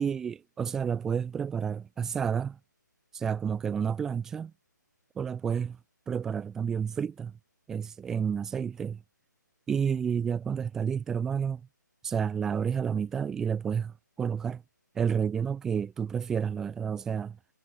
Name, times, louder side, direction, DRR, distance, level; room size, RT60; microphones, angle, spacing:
voice 1, 0.0-2.6 3.1-4.5 5.2-5.7 6.1-7.3 7.7-9.0 9.7-11.6 12.0-14.6 14.9-17.4, right 7 dB, 5° right, 5.0 m, -30 dB
hypercardioid pair, 180°, 10 cm